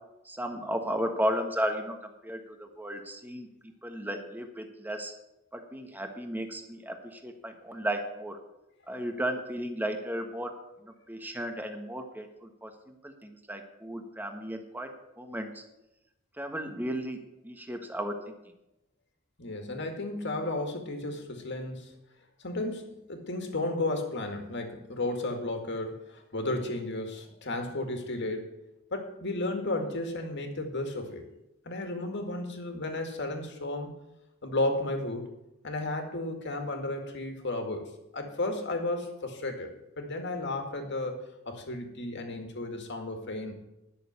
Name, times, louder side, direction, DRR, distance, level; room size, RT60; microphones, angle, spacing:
voice 1, 0.2-3.5 3.8-5.1 5.5-8.4 8.9-10.5 10.8-15.6 16.4-18.4, equal, 10° right, 5 dB, 1.3 m, -34 dB
voice 2, 19.4-21.9 22.4-28.6 28.9-31.2 31.6-34.0 34.4-35.3 35.6-43.5, left 2 dB, 60° left, 4 dB, 2.1 m, -33 dB
11.0 x 6.7 x 8.2 m, 0.90 s
head